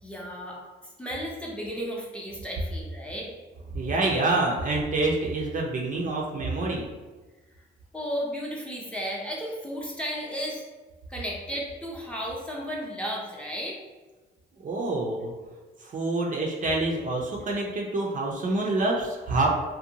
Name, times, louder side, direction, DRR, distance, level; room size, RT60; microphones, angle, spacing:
voice 1, 0.0-3.3 7.9-10.7 11.1-13.8, equal, 5° left, -3 dB, 0.6 m, -34 dB
voice 2, 3.7-6.9 14.6-15.3 15.8-19.5, right 2 dB, 40° right, -1 dB, 0.5 m, -27 dB
2.6 x 2.1 x 2.7 m, 1.2 s
cardioid pair, 90°, 20 cm